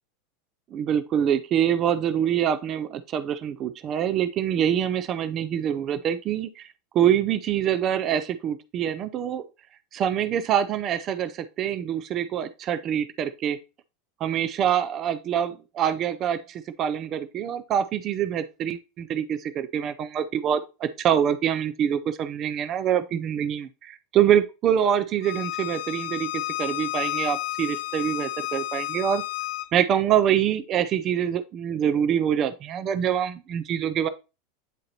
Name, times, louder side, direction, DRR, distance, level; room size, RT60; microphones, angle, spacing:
voice 1, 0.7-6.7 6.9-9.4 9.9-13.6 14.2-29.2 29.7-34.1, right 9 dB, 40° right, 0.5 m, -25 dB
Bowed string instrument, 25.2-29.7, left 17 dB, 65° left, 0.4 m, -31 dB
9.1 x 3.8 x 2.9 m
hypercardioid pair, 95°, 0 cm